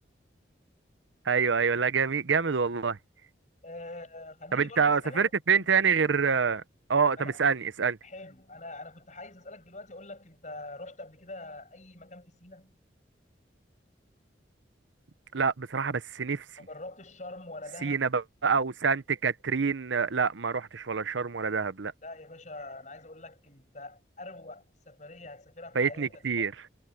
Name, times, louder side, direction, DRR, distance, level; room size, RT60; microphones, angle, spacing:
voice 1, 1.2-3.0 4.5-6.6 6.9-8.0 15.3-16.4 17.8-21.9 25.7-26.5, right 5 dB, 90° right, 0.8 m, -26 dB
voice 2, 3.6-5.3 5.6-5.7 7.2-7.4 8.0-12.7 16.6-18.1 22.0-26.5, left 2 dB, 40° left, 6.5 m, -44 dB
head